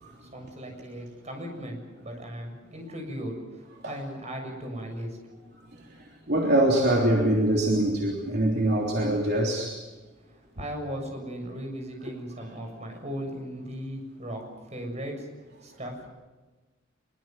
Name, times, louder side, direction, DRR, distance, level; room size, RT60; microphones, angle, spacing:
voice 1, 0.2-5.2 10.3-14.4 14.7-15.3 15.6-16.1, equal, 35° right, 3 dB, 7.2 m, -37 dB
voice 2, 6.3-9.8, right 1 dB, 55° right, -1 dB, 3.4 m, -23 dB
25.0 x 23.0 x 7.6 m, 1.2 s
head